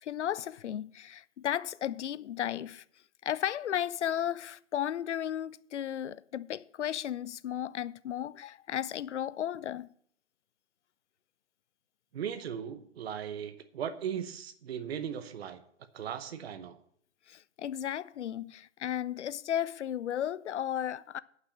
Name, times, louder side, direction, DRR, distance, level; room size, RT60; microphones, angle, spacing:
voice 1, 0.0-2.8 3.2-9.9 17.3-21.2, left 10 dB, 65° left, 0.5 m, -34 dB
voice 2, 12.1-15.6 15.9-16.8, right 8 dB, 55° right, 0.9 m, -37 dB
9.3 x 5.9 x 7.5 m
hypercardioid pair, 145°, 38 cm